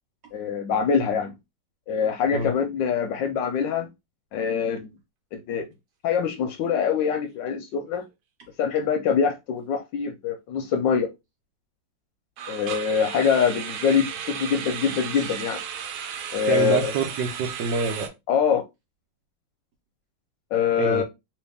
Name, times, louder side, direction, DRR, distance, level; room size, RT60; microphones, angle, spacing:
voice 1, 0.3-1.3 1.9-3.9 4.3-4.9 5.5-5.7 6.0-8.0 8.6-11.1 12.5-15.6 16.3-16.9 18.3-18.6 20.5-21.0, left 6 dB, 75° left, 1.2 m, -24 dB
sound 1, 6.2-6.5 6.7-6.9 7.4-7.5 12.4-18.1, right 8 dB, 85° right, 1.5 m, -35 dB
voice 2, 16.5-18.1 20.8-21.0, right 4 dB, 70° right, 1.1 m, -26 dB
3.1 x 3.0 x 3.3 m
omnidirectional pair, 2.2 m